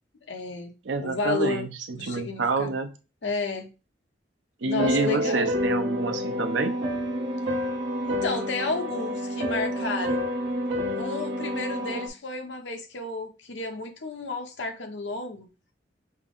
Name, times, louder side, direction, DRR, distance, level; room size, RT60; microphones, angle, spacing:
voice 1, 0.3-0.7 1.0-1.7 1.9-2.7 3.2-3.7 4.6-5.5 8.0-10.3 11.0-15.5, left 3 dB, 80° left, 0.9 m, -32 dB
voice 2, 0.8-2.9 4.6-6.7, right 3 dB, 85° right, 0.7 m, -28 dB
sound 1, 4.8-12.1, equal, 70° right, 1.1 m, -28 dB
5.4 x 2.0 x 3.7 m
head